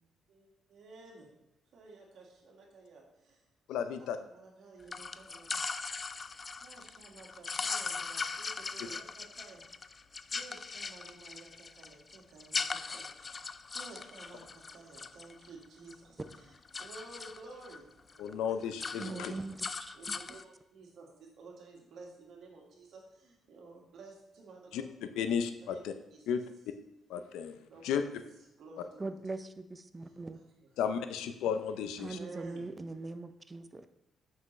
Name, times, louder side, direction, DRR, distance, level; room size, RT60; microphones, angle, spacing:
voice 1, 0.3-1.3 1.7-3.4 3.8-5.5 6.1-6.3 6.5-10.0 10.3-16.5 16.8-17.9 18.1-18.6 19.0-19.2 19.9-24.9 25.1-25.3 25.6-26.3 27.7-28.1 28.6-29.2 30.0-30.4 31.9-32.7, right 3 dB, 70° right, -1 dB, 1.7 m, -53 dB
voice 2, 3.7-4.2 18.2-19.3 24.7-24.8 25.2-25.9 26.3-26.4 27.1-27.6 27.8-28.0 30.8-32.2, left 7 dB, 90° left, 9 dB, 0.5 m, -33 dB
sound 1, 4.9-15.9 16.2-17.8 18.1-18.3 18.6-20.4, left 4 dB, 35° left, 0.3 m, -39 dB
voice 3, 19.0-20.2 29.0-30.4 32.0-33.9, right 3 dB, 25° right, 10 dB, 0.5 m, -41 dB
7.6 x 5.6 x 3.2 m, 0.92 s
cardioid pair, 90°, 0 cm